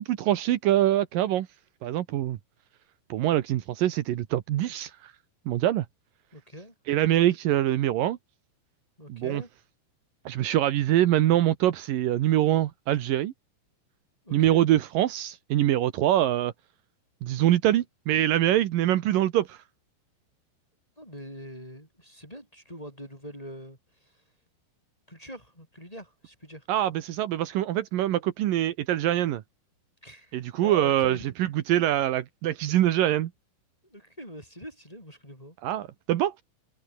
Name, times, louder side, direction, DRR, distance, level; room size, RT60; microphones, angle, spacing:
voice 1, 0.0-1.5 1.8-2.4 3.1-4.9 5.5-5.9 6.9-8.2 9.1-9.4 10.3-13.3 14.3-16.5 17.2-19.6 26.7-29.4 30.3-33.3 35.6-36.3, right 13 dB, 90° right, 1.9 m, -24 dB
voice 2, 6.3-6.7 9.0-9.5 14.2-14.7 21.0-24.2 25.1-26.7 30.0-31.3 33.8-35.6, equal, 5° left, 7.0 m, -44 dB
omnidirectional pair, 5.9 m